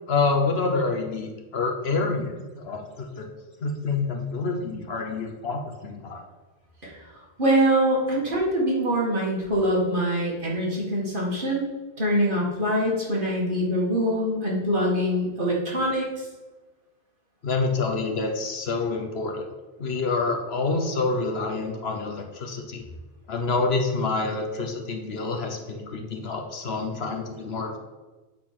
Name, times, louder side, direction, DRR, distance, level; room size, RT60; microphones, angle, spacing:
voice 1, 0.1-3.3 3.6-6.2 17.4-19.4 19.8-22.8 23.3-27.8, left 3 dB, 70° left, 3 dB, 1.3 m, -27 dB
voice 2, 7.4-11.7 12.0-16.1, equal, 50° right, -3 dB, 2.0 m, -24 dB
8.5 x 4.3 x 5.9 m, 1.2 s
omnidirectional pair, 1.1 m